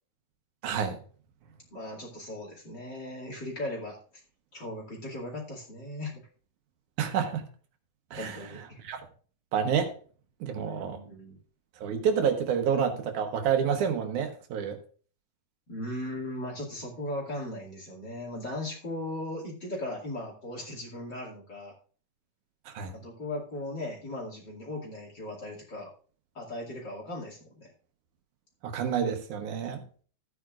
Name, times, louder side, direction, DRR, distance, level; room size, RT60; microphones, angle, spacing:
voice 1, 0.6-1.0 7.0-7.4 8.1-8.4 8.8-9.0 9.5-9.9 10.4-11.0 11.8-14.8 22.7-22.9 28.6-29.8, right 7 dB, 75° right, 2.6 m, -28 dB
voice 2, 1.7-4.0 4.5-6.2 8.1-8.8 10.5-11.4 15.7-21.7 22.9-25.9 26.3-27.7, left 1 dB, 35° left, 2.8 m, -38 dB
14.5 x 9.4 x 2.5 m
omnidirectional pair, 3.6 m